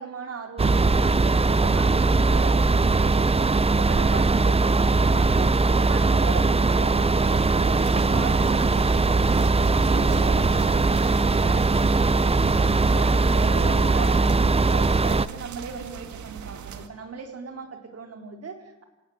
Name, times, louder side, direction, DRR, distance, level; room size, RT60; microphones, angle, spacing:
voice 1, 0.0-14.4 14.7-18.8, right 5 dB, 50° right, 5 dB, 4.4 m, -38 dB
sound 1, 0.6-15.3, right 3 dB, 20° right, 0.8 m, -20 dB
sound 2, 7.2-16.9, right 7 dB, 70° right, 2.2 m, -39 dB
27.5 x 18.5 x 8.2 m, 1.0 s
cardioid pair, 90°, 30 cm